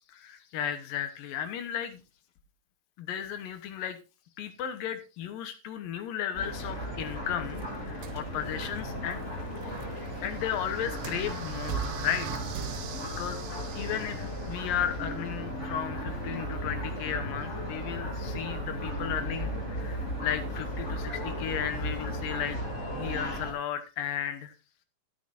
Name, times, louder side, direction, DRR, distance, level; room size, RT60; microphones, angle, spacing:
voice 1, 0.1-2.0 3.0-4.0 4.4-9.2 10.2-12.3 12.6-13.4 13.8-22.6 22.9-24.5, left 9 dB, 80° left, 9 dB, 2.8 m, -34 dB
sound 1, 6.3-23.5, equal, 20° left, 3.5 m, -36 dB
sound 2, 7.6-13.4, right 7 dB, 90° right, 2.8 m, -42 dB
sound 3, 9.7-14.8, right 8 dB, 70° right, 2.7 m, -43 dB
13.0 x 12.0 x 2.6 m, 0.29 s
omnidirectional pair, 4.0 m